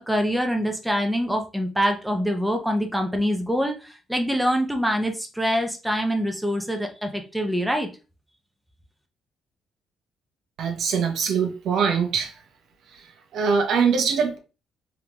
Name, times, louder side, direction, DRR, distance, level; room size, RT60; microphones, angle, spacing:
voice 1, 0.0-7.9, equal, 5° right, 0.8 m, -25 dB
voice 2, 10.6-12.4 12.9-14.4, right 6 dB, 75° right, 0.9 m, -23 dB
3.8 x 3.3 x 2.9 m
cardioid pair, 90°, 0 cm